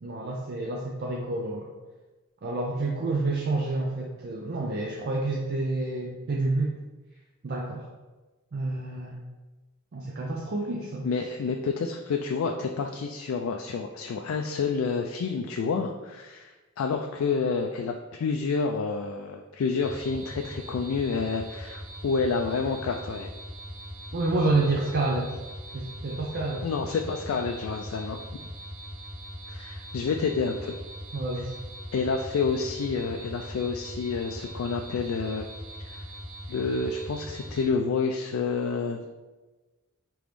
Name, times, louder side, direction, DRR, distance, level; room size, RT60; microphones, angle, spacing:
voice 1, 0.0-1.7 2.4-6.7 7.4-7.9 8.5-9.2 9.9-11.1 24.1-25.4 25.7-26.7 31.1-31.6, right 2 dB, 50° right, -1 dB, 0.4 m, -28 dB
voice 2, 11.0-23.3 26.6-28.2 29.5-30.8 31.9-35.5 35.8-36.0 36.5-39.0, left 4 dB, 70° left, 3 dB, 0.3 m, -29 dB
sound 1, 19.8-37.7, equal, 75° right, 1.1 m, -41 dB
5.1 x 3.0 x 3.3 m, 1.2 s
head